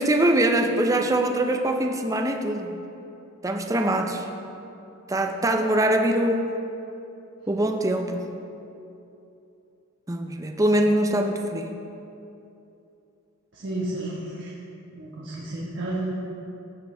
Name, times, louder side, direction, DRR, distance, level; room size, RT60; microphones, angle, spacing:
voice 1, 0.0-2.8 3.4-4.3 5.1-6.5 7.5-8.4 10.1-11.8, right 1 dB, 15° right, 4 dB, 0.5 m, -23 dB
voice 2, 13.5-14.5 14.9-16.1, right 1 dB, 55° right, -6 dB, 1.3 m, -31 dB
15.0 x 6.6 x 3.3 m, 2.8 s
head